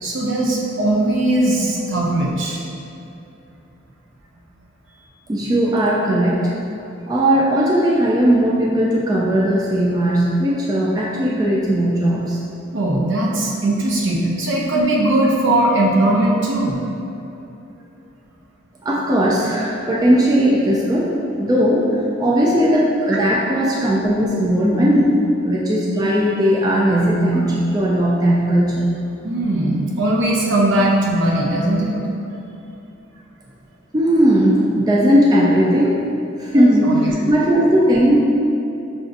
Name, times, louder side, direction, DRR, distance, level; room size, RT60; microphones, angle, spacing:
voice 1, 0.0-2.6 12.7-16.8 23.1-23.2 29.2-32.0 36.5-37.1, right 1 dB, 70° right, -3 dB, 0.7 m, -19 dB
voice 2, 5.3-6.5 7.1-12.4 18.8-21.9 22.2-28.9 33.9-36.0 36.4-38.3, equal, 20° right, -5 dB, 0.3 m, -17 dB
5.8 x 2.6 x 2.5 m, 2.7 s
head